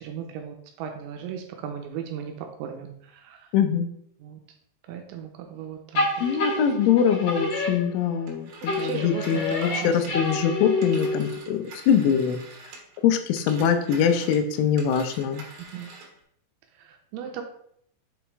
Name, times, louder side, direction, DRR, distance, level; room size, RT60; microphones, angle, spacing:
voice 1, 0.0-3.5 4.2-4.4 4.9-6.3 8.7-10.2 15.7-15.9 16.8-17.4, right 8 dB, 85° right, 4 dB, 2.8 m, -36 dB
voice 2, 3.5-3.9 6.2-12.4 13.0-15.4, left 8 dB, 90° left, 8 dB, 3.2 m, -23 dB
sound 1, 5.9-8.3 8.7-11.5, left 2 dB, 60° left, 1.8 m, -28 dB
Telephone, 8.3-13.0 13.3-16.2, right 3 dB, 65° right, 2.7 m, -46 dB
7.2 x 3.0 x 4.5 m, 0.69 s
omnidirectional pair, 5.4 m